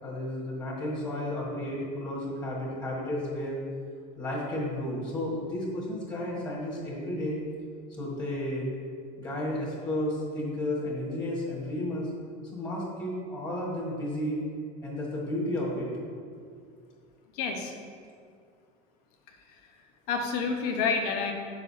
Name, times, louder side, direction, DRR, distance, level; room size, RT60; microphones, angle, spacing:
voice 1, 0.0-3.6 4.2-7.4 8.0-8.7 9.2-12.1 12.5-14.4 14.8-15.9, left 1 dB, 20° left, -5 dB, 1.8 m, -32 dB
voice 2, 17.3-17.7 20.1-21.3, left 5 dB, 80° left, 3 dB, 1.1 m, -28 dB
8.7 x 6.9 x 2.8 m, 2.2 s
cardioid pair, 160°, 20 cm